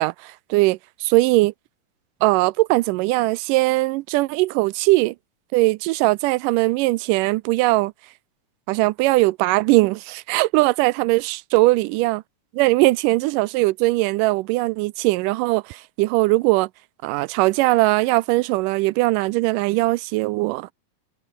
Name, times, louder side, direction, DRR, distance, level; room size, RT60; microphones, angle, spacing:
voice 1, 0.0-1.5 2.2-5.2 5.5-7.9 8.7-12.2 12.5-16.7 17.0-20.7, right 21 dB, 80° right, 2.1 m, -20 dB
omnidirectional pair, 3.9 m